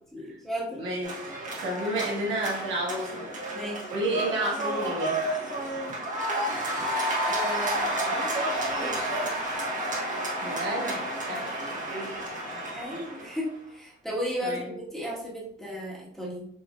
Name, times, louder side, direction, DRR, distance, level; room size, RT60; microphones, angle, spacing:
voice 1, 0.1-0.8 3.5-3.9 7.2-8.2 8.8-9.2 11.3-11.4 12.7-13.5 13.7-16.5, equal, ahead, -6 dB, 1.7 m, -34 dB
voice 2, 0.8-1.1 1.6-3.3 3.9-5.2 10.4-12.1 14.4-14.7, right 1 dB, 80° right, -3 dB, 1.6 m, -31 dB
sound 1, 1.0-13.4, right 1 dB, 40° right, 1.6 m, -31 dB
5.9 x 3.1 x 2.5 m, 0.70 s
cardioid pair, 90°, 20 cm